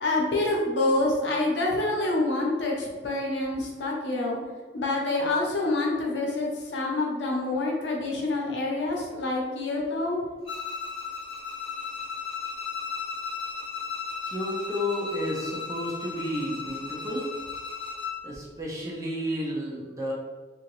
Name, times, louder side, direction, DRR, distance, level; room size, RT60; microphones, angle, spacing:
voice 1, 0.0-4.4 4.7-10.2, left 2 dB, 85° left, -2 dB, 0.7 m, -27 dB
Bowed string instrument, 10.4-18.2, left 5 dB, 30° left, 0.5 m, -35 dB
voice 2, 14.3-17.3 18.2-20.1, equal, 20° right, -5 dB, 0.6 m, -31 dB
2.8 x 2.5 x 3.0 m, 1.3 s
head